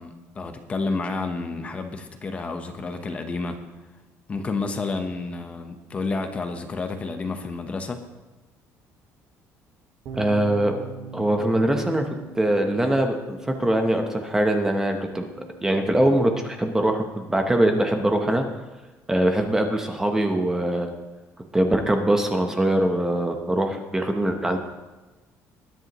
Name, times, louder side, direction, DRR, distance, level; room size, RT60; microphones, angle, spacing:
voice 1, 0.0-3.6 4.3-8.0, left 3 dB, 25° left, 6 dB, 0.9 m, -30 dB
voice 2, 10.1-10.7 11.1-12.1 12.3-15.3 15.6-18.4 19.1-20.9 21.5-24.6, right 1 dB, 10° right, 4 dB, 0.8 m, -22 dB
sound 1, 10.1-16.3, right 5 dB, 55° right, 2.0 m, -43 dB
20.5 x 10.5 x 3.0 m, 1.2 s
cardioid pair, 170°, 6 cm